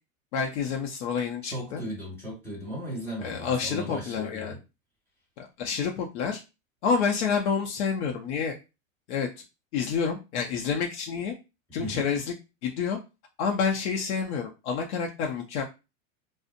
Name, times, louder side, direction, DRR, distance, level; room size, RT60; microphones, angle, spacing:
voice 1, 0.3-1.8 3.2-4.5 5.4-6.4 6.8-8.6 9.1-9.3 9.7-11.3 11.7-12.3 12.6-13.0 13.4-15.6, left 6 dB, 55° left, 1 dB, 0.6 m, -28 dB
voice 2, 1.4-4.6 11.8-12.1, equal, 5° left, -3 dB, 1.4 m, -37 dB
2.6 x 2.0 x 2.5 m, 0.27 s
hypercardioid pair, 125°, 41 cm